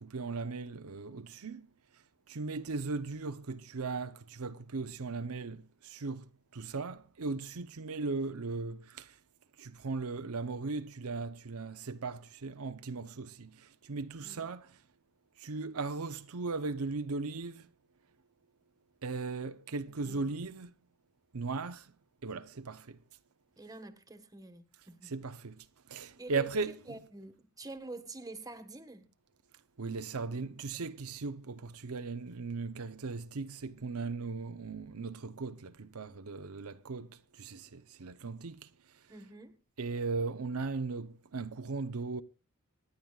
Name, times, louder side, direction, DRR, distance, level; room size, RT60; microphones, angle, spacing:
voice 1, 0.0-1.6 2.3-6.3 6.5-9.1 9.6-13.5 13.9-14.7 15.4-17.7 19.0-20.7 21.3-21.8 22.2-23.0 25.0-25.6 25.9-27.0 29.8-37.1 37.4-38.6 39.8-42.2, right 4 dB, 80° right, 0.8 m, -37 dB
voice 2, 19.7-20.3 23.6-25.1 26.2-29.1 39.1-39.6, right 2 dB, 15° right, 1.5 m, -47 dB
25.5 x 10.5 x 2.4 m
head